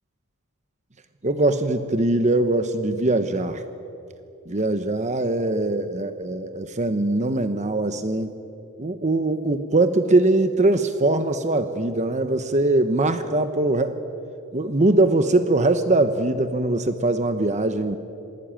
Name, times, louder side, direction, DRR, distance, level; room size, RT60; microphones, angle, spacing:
voice 1, 1.2-3.6 4.5-8.3 8.8-14.0 14.5-18.0, right 2 dB, 35° right, 9 dB, 1.1 m, -22 dB
27.5 x 20.5 x 9.0 m, 2.7 s
head